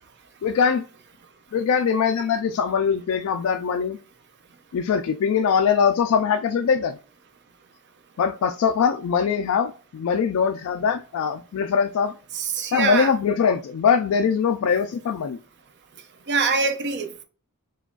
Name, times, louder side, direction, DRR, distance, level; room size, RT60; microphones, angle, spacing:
voice 1, 0.4-0.8 1.5-4.0 4.7-7.0 8.2-12.1 12.7-15.4, left 6 dB, 65° left, 0.3 m, -22 dB
voice 2, 12.3-13.1 16.3-17.2, right 4 dB, 50° right, 0.6 m, -24 dB
4.8 x 2.3 x 2.2 m
head